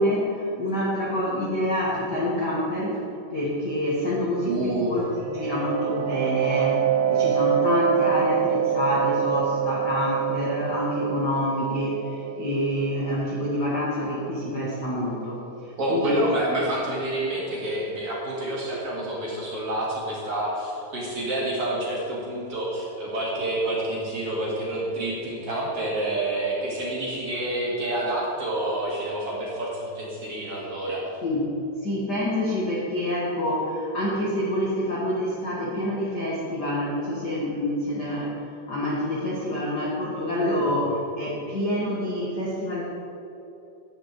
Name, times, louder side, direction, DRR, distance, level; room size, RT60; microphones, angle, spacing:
voice 1, 0.0-3.0 3.3-15.4 15.9-16.1 31.2-31.5 31.8-38.4 38.7-42.8, left 1 dB, 60° left, -5 dB, 1.0 m, -27 dB
voice 2, 4.5-5.0 15.8-31.0 40.4-40.7, right 1 dB, 40° right, -5 dB, 2.6 m, -28 dB
sound 1, 5.0-14.5, right 10 dB, 85° right, 2.7 m, -26 dB
12.5 x 5.3 x 8.2 m, 2.9 s
omnidirectional pair, 4.7 m